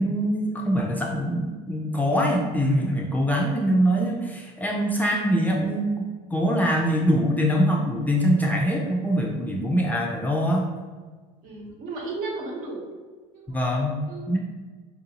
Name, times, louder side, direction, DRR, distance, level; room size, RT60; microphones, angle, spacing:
voice 1, 0.0-6.1 6.3-10.6 13.5-14.0 14.3-14.4, equal, 10° left, -1 dB, 0.4 m, -23 dB
voice 2, 11.4-13.0 13.3-14.4, right 3 dB, 60° right, -2 dB, 1.1 m, -35 dB
4.3 x 2.6 x 2.8 m, 1.4 s
cardioid pair, 120°, 16 cm